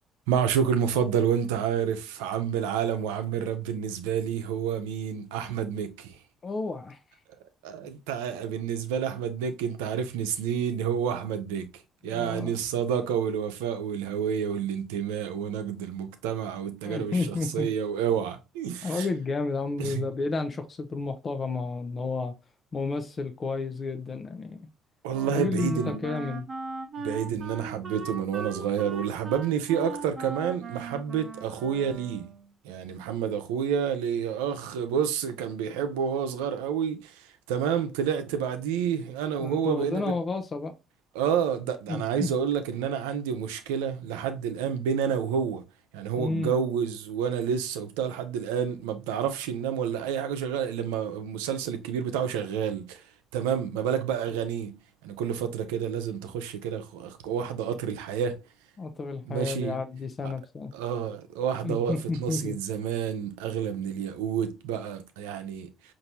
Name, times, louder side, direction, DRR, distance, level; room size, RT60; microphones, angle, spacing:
voice 1, 0.3-6.2 7.6-19.1 19.8-20.1 25.0-26.1 27.0-32.3 32.6-40.1 41.1-45.6 45.9-53.0 53.3-58.4 59.2-59.8 60.2-60.3 60.7-65.7, right 8 dB, 90° right, 0.6 m, -29 dB
voice 2, 6.4-7.0 12.1-12.6 16.8-17.7 18.8-22.3 22.7-24.7 25.3-26.5 39.4-40.8 41.9-42.3 46.2-46.5 58.8-60.7 61.6-62.6, left 3 dB, 40° left, 0.6 m, -31 dB
Wind instrument woodwind instrument, 25.1-32.5, right 4 dB, 45° right, 0.9 m, -39 dB
5.2 x 2.6 x 2.9 m
supercardioid pair, 70°, 0 cm